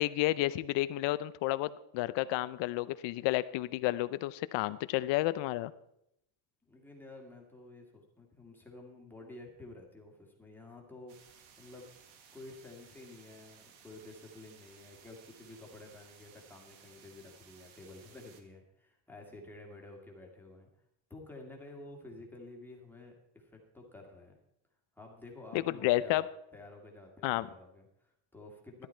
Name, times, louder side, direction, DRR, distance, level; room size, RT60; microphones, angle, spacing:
voice 1, 0.0-5.7 25.5-26.2 27.2-27.5, left 16 dB, 65° left, 16 dB, 0.6 m, -31 dB
voice 2, 6.7-11.9 12.3-20.7 21.1-24.4 25.0-26.3 26.5-28.9, left 2 dB, 5° left, -1 dB, 2.0 m, -51 dB
sound 1, 11.1-18.4, right 7 dB, 80° right, 1.8 m, -59 dB
13.0 x 10.5 x 4.4 m, 0.79 s
cardioid pair, 155°, 47 cm